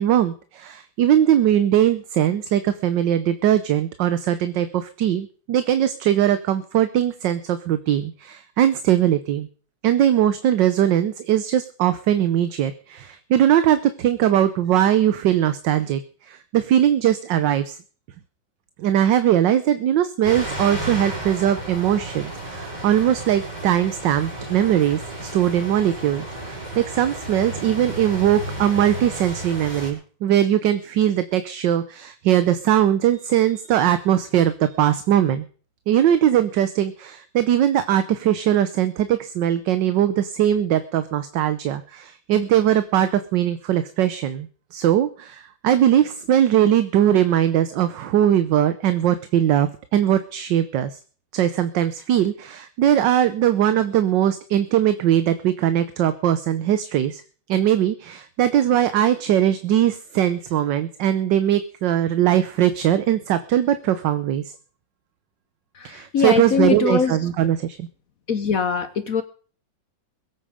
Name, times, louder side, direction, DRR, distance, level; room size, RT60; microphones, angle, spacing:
voice 1, 0.0-9.5 9.8-16.0 16.3-17.8 18.8-35.5 35.9-51.0 51.3-57.2 57.5-64.5 65.8-67.9, right 11 dB, 70° right, 12 dB, 1.4 m, -20 dB
sound 1, 20.2-29.9, right 1 dB, 20° right, 5.9 m, -33 dB
voice 2, 65.7-67.2 68.3-69.2, left 6 dB, 55° left, 11 dB, 1.1 m, -22 dB
21.5 x 8.9 x 5.0 m, 0.41 s
omnidirectional pair, 2.1 m